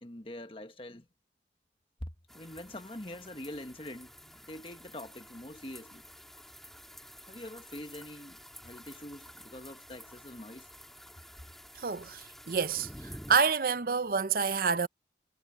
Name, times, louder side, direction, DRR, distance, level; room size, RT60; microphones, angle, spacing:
voice 1, 0.0-1.1 2.0-6.0 7.3-10.7, left 1 dB, 30° left, 1.5 m, -44 dB
sound 1, 2.3-13.4, equal, ahead, 3.4 m, -51 dB
voice 2, 11.8-14.9, right 5 dB, 50° right, 0.6 m, -28 dB
head